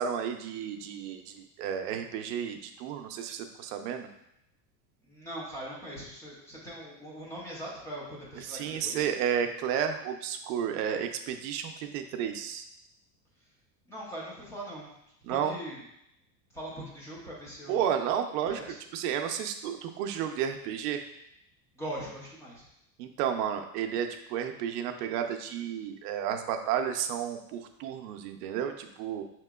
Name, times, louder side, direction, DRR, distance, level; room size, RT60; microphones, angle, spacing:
voice 1, 0.0-4.1 8.5-12.6 15.3-15.5 17.7-18.6 18.9-21.0 23.0-29.2, right 8 dB, 70° right, 6 dB, 0.6 m, -32 dB
voice 2, 5.0-9.1 13.9-14.9 15.3-15.8 16.5-17.8 18.5-18.8 21.7-22.7, right 1 dB, 5° left, -5 dB, 0.3 m, -41 dB
5.6 x 2.9 x 2.3 m, 0.80 s
supercardioid pair, 150°, 48 cm